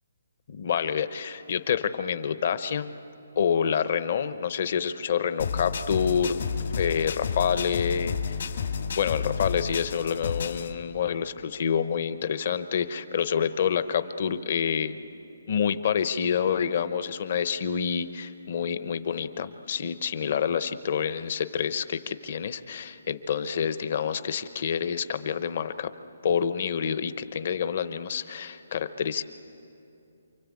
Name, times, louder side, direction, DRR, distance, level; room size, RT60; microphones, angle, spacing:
voice 1, 0.5-2.9 3.4-6.4 6.7-8.4 9.0-15.0 15.5-25.9 26.2-29.2, left 7 dB, 35° left, 12 dB, 0.8 m, -27 dB
sound 1, 5.4-10.7, left 6 dB, 55° left, 1.9 m, -31 dB
28.0 x 24.5 x 8.5 m, 2.7 s
hypercardioid pair, 175°, 0 cm